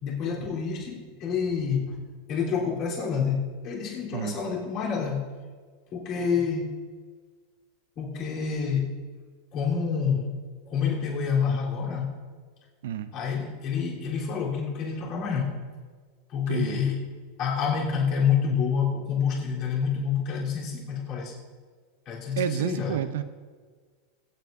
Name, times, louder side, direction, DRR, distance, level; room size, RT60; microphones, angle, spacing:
voice 1, 0.0-1.9 2.3-5.3 5.9-6.8 8.0-8.9 9.5-10.3 10.7-12.1 13.1-15.6 16.3-17.0 17.4-21.3 22.1-23.0, left 6 dB, 50° left, -5 dB, 3.5 m, -28 dB
voice 2, 16.5-16.8 22.4-23.2, right 9 dB, 75° right, 12 dB, 0.6 m, -29 dB
23.0 x 8.3 x 2.7 m, 1.5 s
hypercardioid pair, 105°, 0 cm